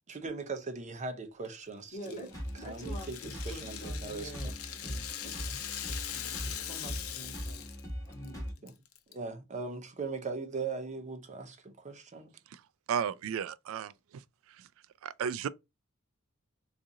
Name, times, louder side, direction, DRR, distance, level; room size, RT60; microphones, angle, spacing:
voice 1, 0.1-4.5 8.6-8.7 9.1-12.4, right 4 dB, 35° right, 0.6 m, -40 dB
voice 2, 1.9-2.3 2.6-7.7 8.0-8.6, equal, 35° left, 1.6 m, -47 dB
Rattle (instrument), 2.0-7.9 8.1-8.3 8.7-9.1, left 10 dB, 75° left, 0.5 m, -41 dB
sound 1, 2.3-8.5, equal, 15° left, 1.8 m, -41 dB
voice 3, 12.9-14.7 15.0-15.5, right 7 dB, 70° right, 0.3 m, -35 dB
3.8 x 2.5 x 2.7 m
head